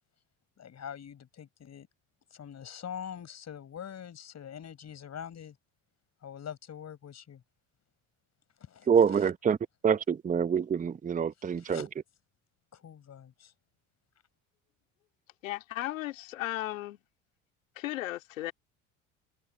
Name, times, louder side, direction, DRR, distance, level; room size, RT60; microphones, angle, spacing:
voice 1, 0.6-1.9 2.3-5.6 6.2-7.4 8.6-9.3 11.4-11.9 12.7-13.5, left 8 dB, 45° left, 6.3 m, -44 dB
voice 2, 8.9-9.6 9.8-11.9, right 7 dB, 20° right, 0.7 m, -26 dB
voice 3, 15.4-17.0 17.8-18.5, left 15 dB, 85° left, 2.3 m, -35 dB
hypercardioid pair, 70°, 38 cm